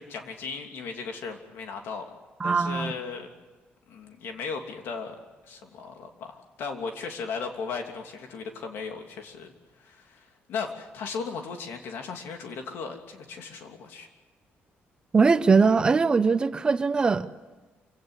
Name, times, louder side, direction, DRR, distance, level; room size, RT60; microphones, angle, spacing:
voice 1, 0.0-2.0 2.4-3.3 3.9-5.2 5.4-9.5 9.8-14.1, left 5 dB, 70° left, 4 dB, 2.9 m, -36 dB
voice 2, 2.4-2.9 15.1-17.3, right 4 dB, 25° right, 12 dB, 0.8 m, -21 dB
27.5 x 18.0 x 8.3 m, 1.2 s
cardioid pair, 155°, 4 cm